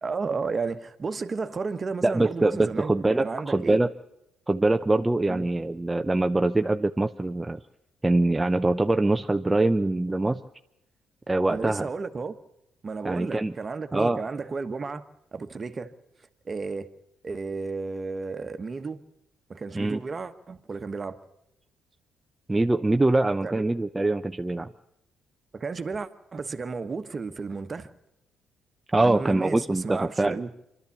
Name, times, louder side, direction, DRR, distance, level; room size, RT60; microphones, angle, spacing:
voice 1, 0.0-3.8 5.3-5.5 11.5-12.4 12.8-15.0 15.3-15.9 16.4-16.9 17.2-19.0 19.5-21.2 23.4-23.6 25.5-27.9 29.0-30.5, right 4 dB, 40° right, 1.3 m, -33 dB
voice 2, 2.0-3.9 4.5-7.6 8.0-10.4 11.3-11.9 13.0-13.5 13.9-14.2 19.7-20.0 22.5-24.7 28.9-30.5, right 2 dB, 20° right, 0.7 m, -24 dB
25.5 x 12.0 x 8.4 m
hypercardioid pair, 55°, 0 cm